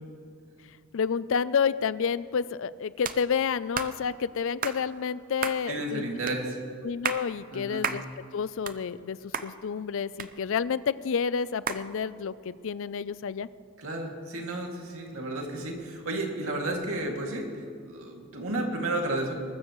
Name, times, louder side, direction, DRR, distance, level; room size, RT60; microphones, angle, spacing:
voice 1, 0.9-6.1 6.8-8.0 8.3-13.5, left 6 dB, 60° left, 17 dB, 0.4 m, -29 dB
sound 1, 3.0-3.2 3.7-3.9 4.6-4.8 5.4-5.6 6.3-6.4 6.9-7.2 7.8-8.0 8.4-9.1 9.3-9.5 10.2-10.8 11.7-11.8, right 7 dB, 40° right, 0.6 m, -32 dB
voice 2, 5.7-6.6 7.5-7.9 13.8-19.3, right 2 dB, 70° right, 1 dB, 2.4 m, -32 dB
22.0 x 13.0 x 3.1 m, 2.4 s
head